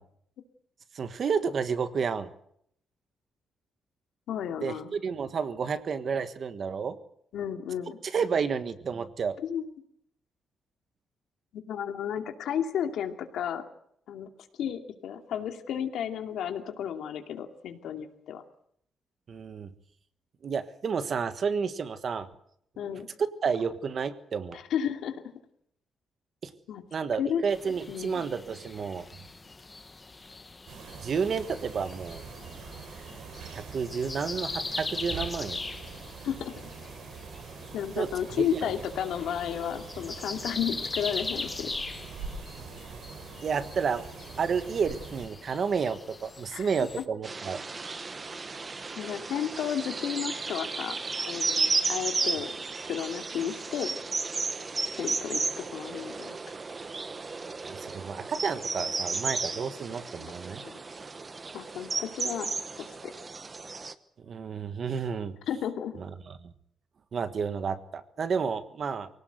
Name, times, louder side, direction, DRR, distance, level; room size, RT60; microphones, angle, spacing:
voice 1, 0.9-2.3 4.6-7.0 8.0-9.4 19.3-19.7 20.4-22.3 23.4-24.6 26.4-26.5 26.9-29.1 31.0-32.2 33.5-35.6 37.9-38.1 38.3-38.7 43.4-44.0 44.4-47.6 57.6-60.6 64.2-65.4 66.0-66.5 67.1-69.1, right 6 dB, 40° right, 11 dB, 1.4 m, -31 dB
voice 2, 4.3-4.9 7.3-8.0 9.4-9.6 11.7-13.6 14.1-14.3 14.6-18.4 22.8-23.1 24.5-25.2 26.7-26.8 27.2-27.4 27.9-28.3 36.2-36.5 37.7-41.7 46.5-46.7 49.0-51.0 51.3-52.5 52.9-54.0 55.0-56.4 60.2-60.3 60.6-60.8 61.5-63.1 65.5-65.9, left 9 dB, 75° left, 6 dB, 2.5 m, -33 dB
sound 1, 27.5-47.0, left 3 dB, 15° left, 1.1 m, -41 dB
sound 2, 30.7-45.3, right 5 dB, 75° right, 4.9 m, -44 dB
sound 3, 47.2-63.9, right 4 dB, 25° right, 1.0 m, -33 dB
24.5 x 18.0 x 8.0 m, 0.70 s
cardioid pair, 175°, 0 cm